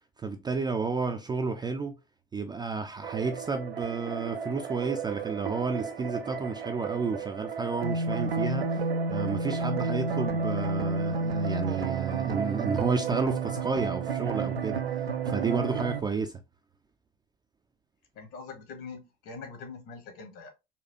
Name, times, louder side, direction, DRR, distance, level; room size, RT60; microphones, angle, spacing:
voice 1, 0.2-1.9 2.3-14.8 15.3-16.4, right 4 dB, 15° right, 0.4 m, -31 dB
sound 1, 3.0-16.0, right 4 dB, 85° right, 0.5 m, -31 dB
voice 2, 18.1-20.5, left 4 dB, 55° left, 1.3 m, -43 dB
4.1 x 2.3 x 2.8 m
figure-of-eight pair, 65°, 29 cm